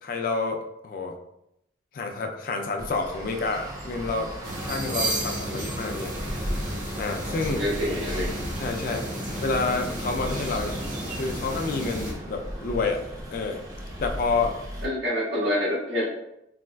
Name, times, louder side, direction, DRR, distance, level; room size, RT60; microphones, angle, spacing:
voice 1, 0.0-1.2 1.9-4.3 4.6-6.1 7.0-7.7 8.6-9.0 9.4-10.8 11.2-13.0 13.3-13.6 14.0-14.6, left 3 dB, 45° left, 4 dB, 0.3 m, -28 dB
Traffic noise roadway noise, 2.8-14.9, equal, 20° right, 0.4 m, -36 dB
sound 1, 4.4-12.1, right 1 dB, 45° right, 0.8 m, -33 dB
voice 2, 7.6-8.3 14.8-16.0, equal, 75° right, -7 dB, 1.3 m, -27 dB
4.0 x 2.3 x 2.2 m, 0.82 s
head